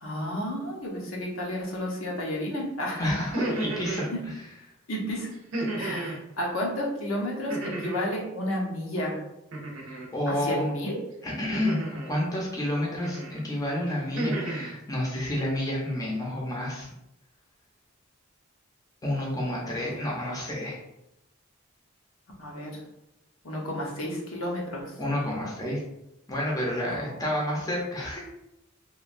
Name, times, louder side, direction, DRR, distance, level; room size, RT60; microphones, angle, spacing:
voice 1, 0.0-3.0 3.9-4.2 4.9-5.3 5.8-9.2 10.3-11.0 19.9-20.0 22.4-22.8 23.4-24.9 26.9-27.6, equal, 75° left, -2 dB, 0.7 m, -32 dB
voice 2, 3.0-4.3 9.8-10.7 11.2-16.9 19.0-20.8 25.0-25.8 26.3-28.2, left 1 dB, 15° left, -4 dB, 0.6 m, -30 dB
sound 1, 3.2-4.1 5.5-6.2 7.5-8.2 9.5-10.1 11.5-12.2 13.0-13.4 13.9-14.7, right 2 dB, 70° right, 0.6 m, -32 dB
3.0 x 2.2 x 2.5 m, 0.86 s
head